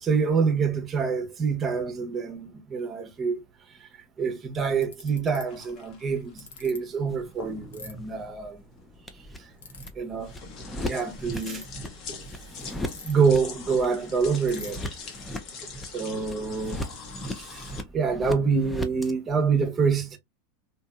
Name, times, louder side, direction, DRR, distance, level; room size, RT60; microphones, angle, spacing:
voice 1, 0.0-3.4 4.2-8.6 10.0-10.3 10.9-11.6 13.0-14.9 15.9-16.8 17.4-17.6 17.9-20.2, right 5 dB, 25° right, 0.8 m, -26 dB
Ratchet pawl, 4.1-4.2 4.8-5.4 6.4-6.8 7.7-7.9 9.6-9.9 11.2-11.6 12.9-13.4 13.7-13.8 14.0-14.1 14.5-14.8, left 4 dB, 85° left, 0.9 m, -42 dB
sound 1, 5.5-17.8, left 5 dB, 45° left, 1.0 m, -44 dB
sound 2, 7.1-19.1, equal, 10° left, 0.5 m, -39 dB
2.7 x 2.6 x 2.3 m
hypercardioid pair, 105°, 0 cm